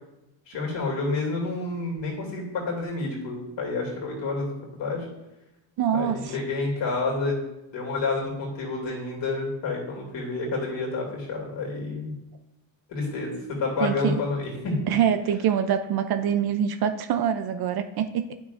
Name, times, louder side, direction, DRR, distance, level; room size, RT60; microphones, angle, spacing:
voice 1, 0.5-5.0 5.9-7.4 7.7-12.1 12.9-14.8, left 3 dB, 60° left, -2 dB, 2.5 m, -29 dB
voice 2, 5.8-6.4 13.8-14.2 14.9-18.3, right 8 dB, 50° right, 9 dB, 0.5 m, -25 dB
10.5 x 6.1 x 2.5 m, 0.92 s
cardioid pair, 155°, 49 cm